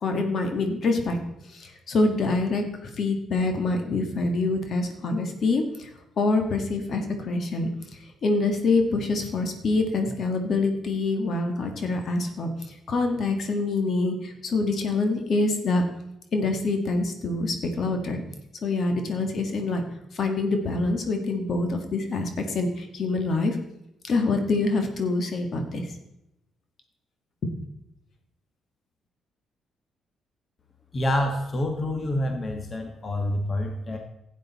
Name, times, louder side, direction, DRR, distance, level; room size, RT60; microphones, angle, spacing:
voice 1, 0.0-1.2 1.5-5.9 6.2-7.7 8.2-12.5 12.9-15.8 16.3-18.2 18.6-19.8 20.1-23.6 24.0-25.9, left 3 dB, 55° left, 5 dB, 1.7 m, -25 dB
voice 2, 30.9-34.0, left 1 dB, 35° left, 4 dB, 1.4 m, -27 dB
12.0 x 8.3 x 4.1 m, 0.85 s
cardioid pair, 90°, 0 cm